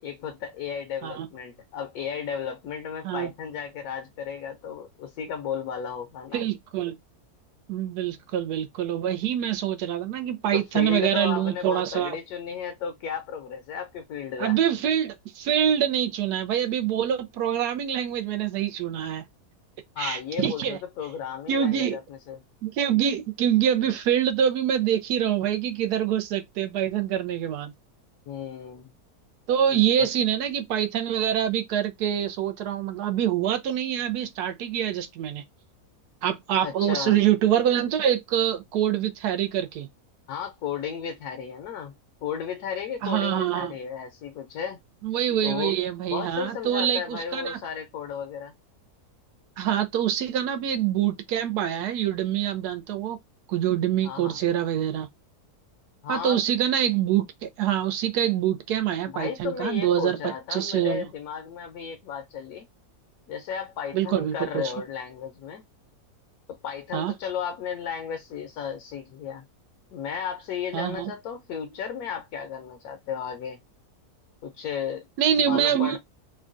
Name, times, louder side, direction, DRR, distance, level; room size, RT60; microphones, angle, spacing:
voice 1, 0.0-6.4 10.5-14.6 20.0-22.4 28.3-28.9 30.0-30.1 36.6-37.2 40.3-41.9 42.2-44.8 45.4-45.7 46.1-48.5 54.0-54.4 56.0-56.4 59.1-62.7 63.3-65.6 66.5-69.4 69.9-73.6 74.4-75.1 75.4-76.0, left 7 dB, 75° left, 1.1 m, -34 dB
voice 2, 6.3-7.0 7.7-12.2 14.4-19.3 20.0-20.8 21.5-22.0 22.6-27.7 29.5-35.4 36.2-39.9 43.0-43.7 45.0-47.6 49.6-53.2 53.5-55.1 56.1-61.1 63.9-64.7 66.9-67.1 70.7-71.0 75.2-76.0, right 10 dB, 85° right, 1.2 m, -25 dB
3.6 x 2.2 x 2.5 m
omnidirectional pair, 1.6 m